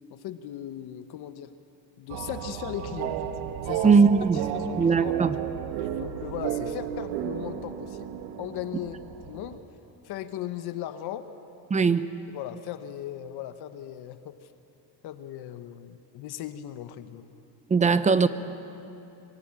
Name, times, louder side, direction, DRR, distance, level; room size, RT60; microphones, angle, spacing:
voice 1, 0.1-1.5 2.0-3.3 3.6-3.9 4.3-5.2 5.8-8.1 8.4-9.0 9.2-9.6 10.0-11.2 11.8-11.9 12.3-14.5 15.0-17.3, left 11 dB, 55° left, 9 dB, 1.2 m, -38 dB
sound 1, 2.1-9.6, right 9 dB, 85° right, 1.6 m, -33 dB
voice 2, 3.8-4.4 4.8-5.3 11.7-12.1 17.7-18.3, right 5 dB, 15° right, 12 dB, 0.7 m, -20 dB
25.0 x 23.5 x 9.0 m, 2.9 s
cardioid pair, 155°, 46 cm